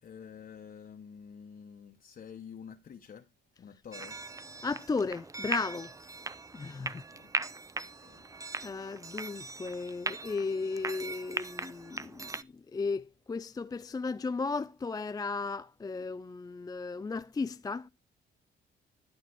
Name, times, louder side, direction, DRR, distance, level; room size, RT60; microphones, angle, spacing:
voice 1, 0.0-3.3 3.6-4.2 6.8-7.3 7.8-8.3, left 7 dB, 45° left, 1.1 m, -49 dB
sound 1, 3.9-12.4, right 3 dB, 15° right, 0.7 m, -39 dB
voice 2, 4.6-5.9 6.5-7.0 8.6-12.5 12.7-17.9, left 4 dB, 20° left, 0.4 m, -35 dB
11.5 x 5.7 x 4.6 m
cardioid pair, 90°, 20 cm